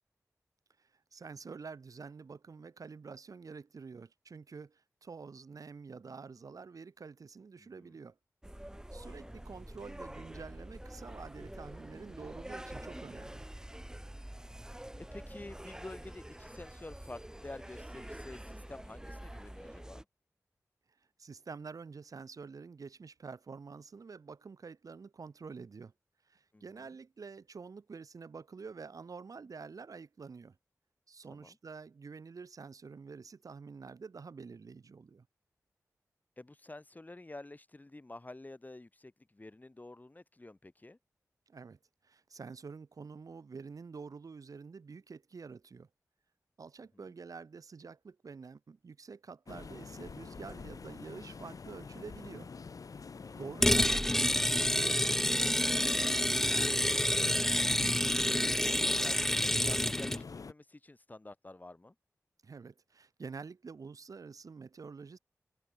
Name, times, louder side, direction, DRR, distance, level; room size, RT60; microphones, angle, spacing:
voice 1, 0.8-8.2 8.9-13.5 21.2-25.9 26.2-30.6 31.1-35.3 41.5-45.9 46.6-52.5 53.4-57.1 62.4-65.2, right 5 dB, 70° right, 2.0 m, -48 dB
voice 2, 7.6-7.9 9.0-9.4 15.0-20.0 26.5-27.0 31.3-31.6 36.4-41.0 46.9-47.0 53.2-53.7 58.2-61.9, left 2 dB, 30° left, 1.5 m, -50 dB
sound 1, 8.4-20.0, right 1 dB, 10° right, 2.8 m, -46 dB
sound 2, 49.5-60.5, left 5 dB, 70° left, 2.1 m, -46 dB
sound 3, 53.6-60.2, left 1 dB, 5° left, 0.5 m, -28 dB
cardioid pair, 60°, 6 cm